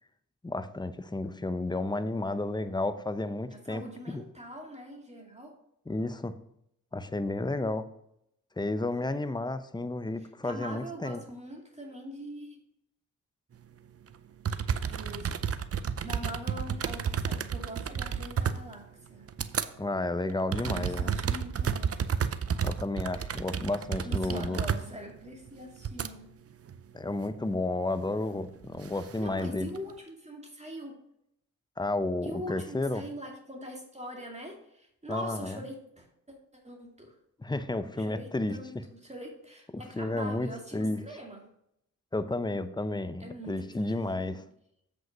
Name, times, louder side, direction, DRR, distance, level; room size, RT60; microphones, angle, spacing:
voice 1, 0.4-4.3 5.9-6.3 6.9-7.9 8.6-11.2 19.8-21.1 22.6-24.6 26.9-29.7 31.8-33.0 35.1-35.6 37.4-38.6 39.7-41.0 42.1-44.4, left 2 dB, 10° left, 12 dB, 0.7 m, -32 dB
voice 2, 3.5-5.5 8.9-9.1 10.2-12.6 14.8-15.6 16.0-19.3 20.6-22.0 24.0-26.2 29.2-31.0 32.2-36.1 36.6-37.2 38.0-41.4 43.2-44.4, equal, 20° right, 1 dB, 2.2 m, -43 dB
sound 1, 14.1-14.2 14.4-19.7 20.1-26.1 26.6-27.2 28.4-29.9, right 7 dB, 40° right, 0.6 m, -32 dB
7.7 x 5.3 x 5.2 m, 0.76 s
supercardioid pair, 45°, 36 cm